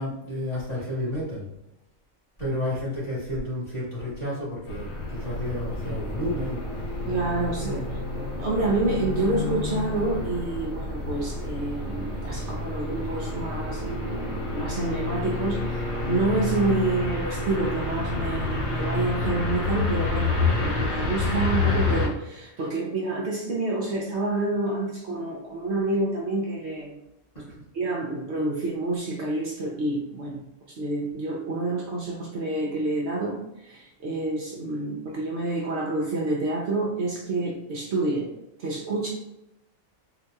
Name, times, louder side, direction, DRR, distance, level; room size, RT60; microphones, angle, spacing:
voice 1, 0.0-1.4 2.4-6.6 7.6-7.8 27.3-27.6, left 1 dB, 40° left, -7 dB, 1.7 m, -31 dB
sound 1, 4.7-22.1, left 3 dB, 60° left, 1.0 m, -29 dB
voice 2, 7.1-7.8 8.4-27.0 27.7-30.4 30.8-38.3 38.6-39.1, right 2 dB, 60° right, -2 dB, 0.8 m, -28 dB
3.9 x 2.8 x 2.3 m, 0.87 s
omnidirectional pair, 1.4 m